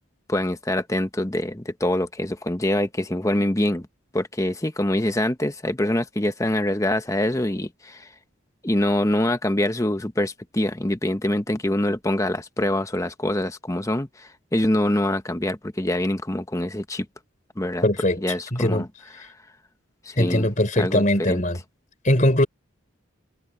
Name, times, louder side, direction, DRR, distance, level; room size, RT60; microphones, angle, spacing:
voice 1, 0.3-3.9 4.1-8.1 8.6-17.1 17.6-17.9 18.2-18.9 19.2-19.3 20.0-21.4, left 1 dB, 15° left, 1.0 m, -25 dB
voice 2, 17.8-18.2 18.5-18.9 20.2-21.6 22.0-22.5, left 1 dB, 40° left, 4.2 m, -20 dB
head